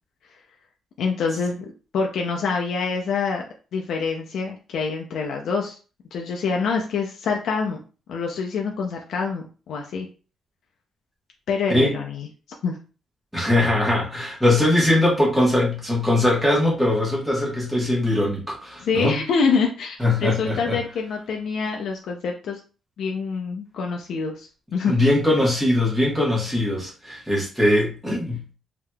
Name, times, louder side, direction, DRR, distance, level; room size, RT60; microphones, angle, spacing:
voice 1, 1.0-3.4 3.7-5.8 6.1-7.8 8.1-10.1 11.5-12.3 12.6-12.8 18.8-22.6 23.0-24.9, left 5 dB, 65° left, 1 dB, 0.5 m, -26 dB
voice 2, 13.3-19.1 20.0-20.8 24.8-28.4, left 1 dB, 5° right, -4 dB, 1.2 m, -21 dB
3.4 x 2.8 x 2.3 m, 0.36 s
cardioid pair, 155°, 0 cm